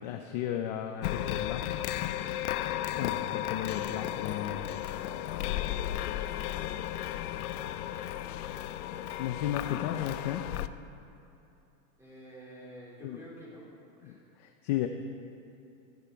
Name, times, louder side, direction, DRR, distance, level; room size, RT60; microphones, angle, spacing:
voice 1, 0.0-1.7 2.9-4.8 9.2-10.5 13.0-13.2 14.0-14.1 14.4-14.9, left 11 dB, 30° left, 6 dB, 0.5 m, -34 dB
sound 1, 1.0-10.7, left 12 dB, 80° left, 0.7 m, -34 dB
voice 2, 12.0-13.7 14.0-14.2, equal, 5° right, -6 dB, 3.8 m, -49 dB
16.0 x 14.5 x 4.6 m, 2.8 s
supercardioid pair, 160°, 44 cm